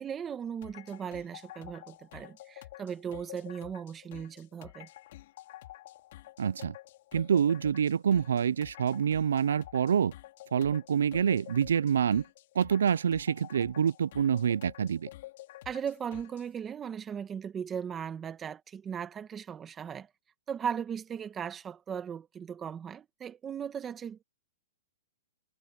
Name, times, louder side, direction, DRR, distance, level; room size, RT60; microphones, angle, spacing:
voice 1, 0.0-4.9 15.7-20.1 20.5-24.2, right 7 dB, 15° right, 1.7 m, -37 dB
sound 1, 0.6-16.5, left 15 dB, 55° left, 2.6 m, -49 dB
voice 2, 6.4-6.7 7.1-10.1 10.5-12.2 12.5-15.1, right 7 dB, 85° right, 0.3 m, -27 dB
hypercardioid pair, 155°, 0 cm